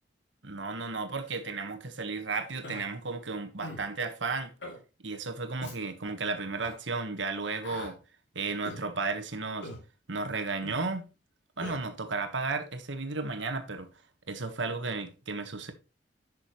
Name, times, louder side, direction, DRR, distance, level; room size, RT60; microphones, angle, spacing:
voice 1, 0.4-4.5 5.0-8.0 8.3-9.7 10.1-11.1 11.6-13.9 14.3-15.7, right 3 dB, 80° right, 1.4 m, -34 dB
Human voice, 2.6-2.8 3.6-3.9 4.6-4.8 5.6-5.8 6.6-6.8 7.6-7.9 8.6-8.8 9.6-9.8 10.6-10.8 11.6-11.8, left 1 dB, 75° left, 2.8 m, -41 dB
10.5 x 6.5 x 3.1 m
head